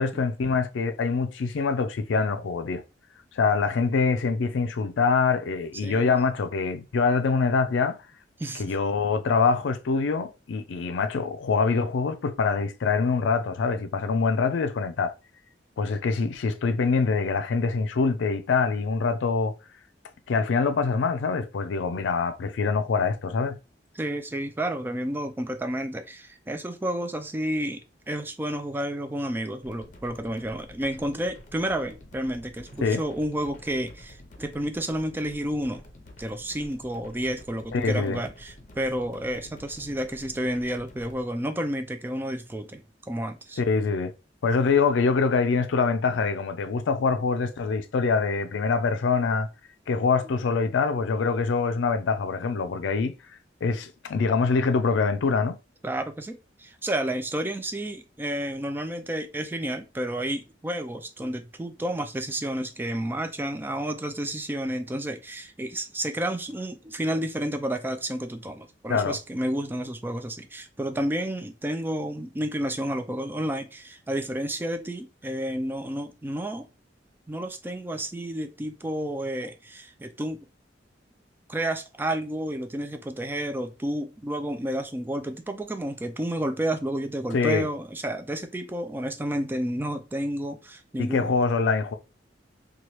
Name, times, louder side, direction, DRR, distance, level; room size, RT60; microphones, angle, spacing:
voice 1, 0.0-2.8 3.3-8.0 8.5-15.1 15.8-19.5 20.3-23.6 32.8-33.0 37.7-38.2 43.6-44.1 44.4-49.5 49.9-53.1 53.6-55.6 68.9-69.2 87.3-87.7 91.0-91.9, left 4 dB, 85° left, 0.4 m, -24 dB
voice 2, 5.8-6.1 8.4-8.7 24.0-35.8 36.2-43.6 55.8-76.7 77.3-80.5 81.5-91.3, right 1 dB, 10° right, 0.3 m, -31 dB
sound 1, 29.6-41.2, left 1 dB, 45° left, 0.6 m, -49 dB
3.0 x 2.3 x 2.9 m
head